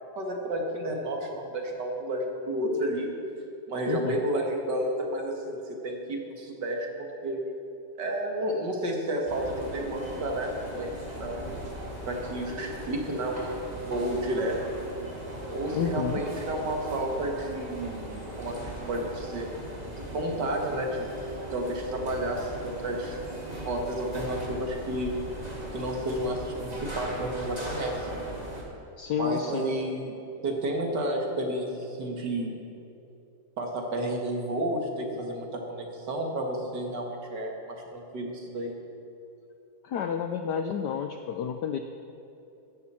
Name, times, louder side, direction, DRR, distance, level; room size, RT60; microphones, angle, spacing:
voice 1, 0.2-3.1 3.7-7.4 8.0-11.4 12.1-14.8 15.5-19.5 20.0-21.1 21.5-23.2 23.7-25.1 25.7-28.1 29.2-30.2 30.4-32.5 33.6-38.8, right 1 dB, 55° right, 1 dB, 2.2 m, -31 dB
voice 2, 3.9-4.2 15.7-16.2 29.0-29.8 39.8-41.8, left 8 dB, 75° left, 7 dB, 1.0 m, -30 dB
sound 1, 9.3-28.6, right 1 dB, 20° right, 2.2 m, -38 dB
16.0 x 13.5 x 4.4 m, 2.8 s
omnidirectional pair, 2.4 m